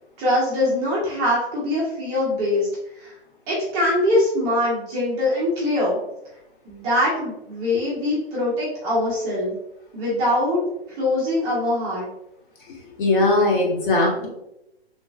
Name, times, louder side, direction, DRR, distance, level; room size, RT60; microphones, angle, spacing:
voice 1, 0.2-2.7 3.0-3.1 3.5-6.0 6.6-9.6 9.9-10.6 11.0-12.1, left 1 dB, 10° right, -7 dB, 0.4 m, -22 dB
voice 2, 12.7-14.3, left 2 dB, 50° left, -1 dB, 1.1 m, -20 dB
3.1 x 2.7 x 2.3 m, 0.86 s
hypercardioid pair, 140°, 33 cm